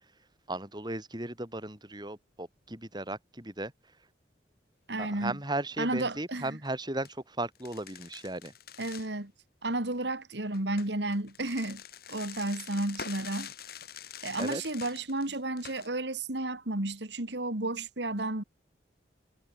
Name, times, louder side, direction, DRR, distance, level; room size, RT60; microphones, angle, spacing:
voice 1, 0.5-3.7 5.0-8.5 14.4-14.6, right 2 dB, 25° right, 5.1 m, -36 dB
voice 2, 4.9-5.4 5.8-6.6 8.8-9.3 9.6-11.8 12.1-13.5 14.2-18.4, right 2 dB, 75° right, 2.8 m, -32 dB
sound 1, 6.5-6.7 7.0-7.1 7.5-9.1 10.5-15.9, left 8 dB, 55° left, 5.0 m, -45 dB
head